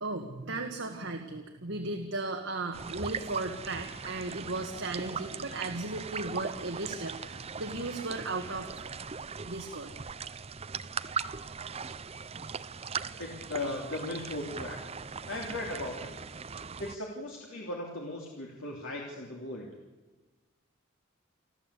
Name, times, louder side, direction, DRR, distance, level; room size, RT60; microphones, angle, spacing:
voice 1, 0.0-8.9 9.4-9.9, right 2 dB, 60° right, 3 dB, 1.7 m, -36 dB
sound 1, 2.7-17.0, right 5 dB, 30° right, 0.6 m, -39 dB
voice 2, 13.2-15.0 15.3-16.1 16.8-19.8, left 2 dB, 85° left, -1 dB, 3.2 m, -37 dB
29.0 x 13.0 x 8.4 m, 1.2 s
head